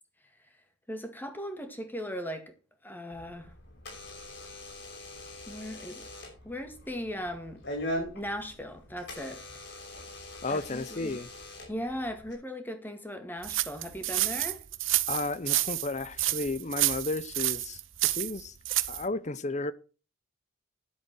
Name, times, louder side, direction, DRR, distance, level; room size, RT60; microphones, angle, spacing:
voice 1, 0.9-2.5 2.8-3.5 5.5-6.1 6.4-7.6 8.1-9.7 10.5-11.2 11.7-14.6, equal, 10° left, 2.0 m, -38 dB
Door / Alarm, 3.1-12.3, left 1 dB, 60° left, 5.7 m, -42 dB
voice 2, 10.4-11.3 15.1-18.6 18.9-19.7, left 2 dB, 35° left, 0.8 m, -33 dB
Footsteps In Slush, 13.4-19.0, right 16 dB, 70° right, 0.8 m, -29 dB
10.5 x 7.9 x 6.2 m
head